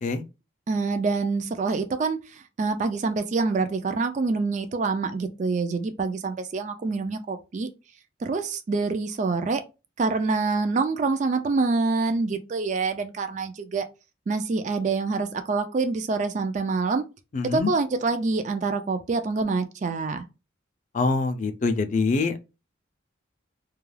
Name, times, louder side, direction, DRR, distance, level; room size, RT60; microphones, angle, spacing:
voice 1, 0.7-7.7 8.2-9.6 10.0-13.9 14.3-17.0 17.5-20.2, right 4 dB, 40° right, 0.3 m, -26 dB
voice 2, 17.3-17.7 20.9-22.4, left 3 dB, 40° left, 0.4 m, -24 dB
2.3 x 2.2 x 3.1 m
head